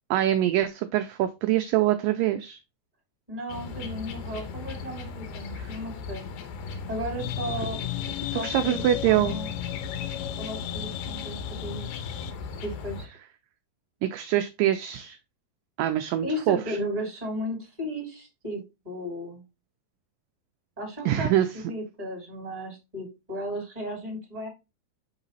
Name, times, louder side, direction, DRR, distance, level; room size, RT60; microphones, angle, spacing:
voice 1, 0.1-2.6 8.4-9.4 14.0-15.2 15.8-16.8 21.1-21.5, right 13 dB, 80° right, 7 dB, 2.0 m, -24 dB
voice 2, 3.3-6.2 6.9-7.8 8.3-9.5 10.4-11.9 12.6-13.1 16.2-19.4 20.8-24.5, equal, 10° right, 1 dB, 2.4 m, -35 dB
sound 1, 3.5-13.1, left 4 dB, 70° left, 2.1 m, -38 dB
sound 2, 7.2-12.3, left 15 dB, 85° left, 2.6 m, -35 dB
7.3 x 4.0 x 4.0 m, 0.25 s
omnidirectional pair, 4.4 m